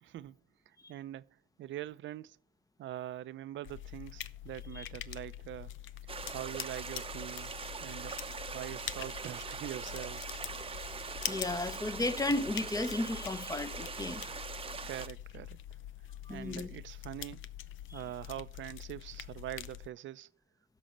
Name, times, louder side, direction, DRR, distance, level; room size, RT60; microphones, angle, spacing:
voice 1, 0.0-0.4 0.7-2.4 2.8-5.7 6.3-7.5 7.8-8.2 8.5-10.3 14.7-15.6 16.3-17.5 17.9-20.3, right 13 dB, 70° right, 0.6 m, -43 dB
sound 1, 3.6-19.9, left 12 dB, 75° left, 0.7 m, -45 dB
sound 2, 6.1-15.1, right 5 dB, 30° right, 0.8 m, -42 dB
voice 2, 11.3-14.3 16.3-16.7 17.9-18.0, left 2 dB, 15° left, 0.9 m, -34 dB
15.5 x 6.3 x 4.4 m
cardioid pair, 90°, 20 cm